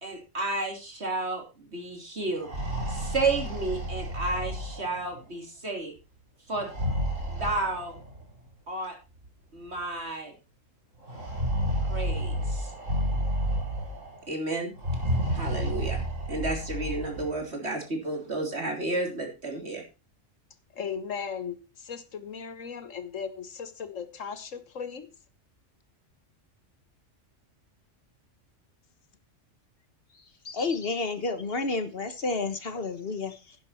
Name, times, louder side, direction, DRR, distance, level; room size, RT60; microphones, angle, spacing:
voice 1, 0.0-2.5 2.9-5.9 6.5-6.7 7.3-8.0 8.7-9.0 9.5-10.3 11.9-12.7 14.3-14.7 15.3-16.0 16.3-19.8, right 2 dB, 55° right, 3.4 m, -31 dB
sound 1, 2.3-5.2 6.5-8.2 9.2-9.3 9.7-9.8 11.1-14.2 14.8-17.4, equal, 85° right, 4.5 m, -31 dB
voice 2, 20.7-25.1, left 6 dB, 85° left, 1.6 m, -37 dB
voice 3, 30.4-33.6, left 3 dB, 50° left, 1.4 m, -30 dB
10.5 x 10.5 x 4.3 m
omnidirectional pair, 1.3 m